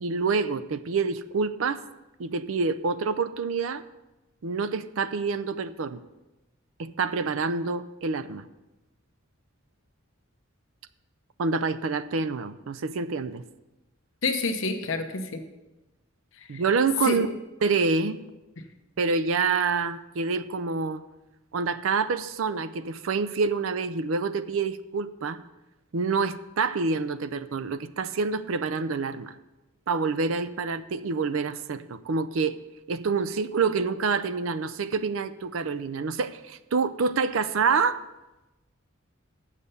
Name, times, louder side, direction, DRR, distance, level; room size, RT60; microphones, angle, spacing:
voice 1, 0.0-1.8 2.2-3.8 4.4-6.0 6.8-8.4 11.4-13.4 16.5-17.3 17.6-18.2 19.0-21.0 21.5-25.4 25.9-29.4 29.9-32.6 32.9-38.0, right 4 dB, 75° right, 14 dB, 0.5 m, -27 dB
voice 2, 14.2-15.4 16.4-16.6 17.0-17.2, left 3 dB, 65° left, 6 dB, 0.9 m, -28 dB
7.4 x 6.6 x 6.9 m, 1.0 s
head